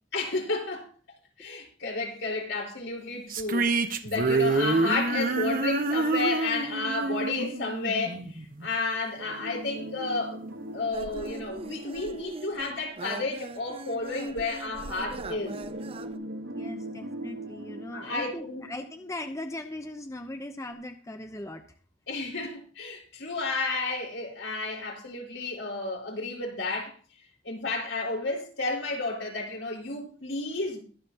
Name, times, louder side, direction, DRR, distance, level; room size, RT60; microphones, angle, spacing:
voice 1, 0.1-0.9 1.4-10.4 10.7-15.6 17.9-18.6 22.1-26.9 27.4-30.8, left 3 dB, 75° left, 4.6 m, -32 dB
sound 1, 3.3-8.7, right 3 dB, 45° right, 1.1 m, -27 dB
sound 2, 5.0-7.7 9.2-13.5 14.8-19.7 20.0-20.1 20.7-20.8, right 1 dB, 75° right, 1.4 m, -42 dB
sound 3, 10.9-16.2, right 2 dB, 30° right, 0.6 m, -41 dB
voice 2, 16.5-21.6, left 1 dB, 15° left, 0.8 m, -39 dB
22.0 x 7.6 x 2.9 m
head